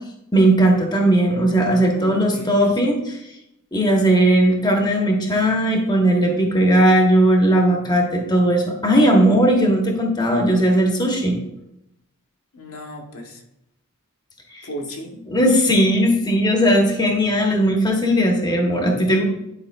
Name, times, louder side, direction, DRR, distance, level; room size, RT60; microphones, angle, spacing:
voice 1, 0.3-3.2 3.7-11.4 14.5-14.6 15.3-19.2, right 1 dB, 20° left, 1 dB, 1.0 m, -17 dB
voice 2, 1.8-2.8 12.5-13.4 14.6-15.1, equal, 70° left, 1 dB, 1.1 m, -36 dB
10.0 x 4.9 x 2.2 m, 0.83 s
head